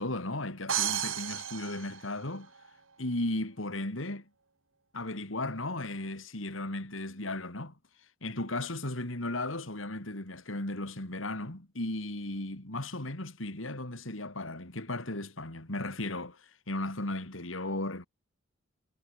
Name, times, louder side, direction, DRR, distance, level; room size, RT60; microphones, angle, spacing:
voice 1, 0.0-2.5 3.0-4.2 4.9-7.7 8.2-18.1, left 2 dB, 80° left, 3.7 m, -35 dB
sound 1, 0.7-2.7, right 10 dB, 85° right, 2.8 m, -33 dB
head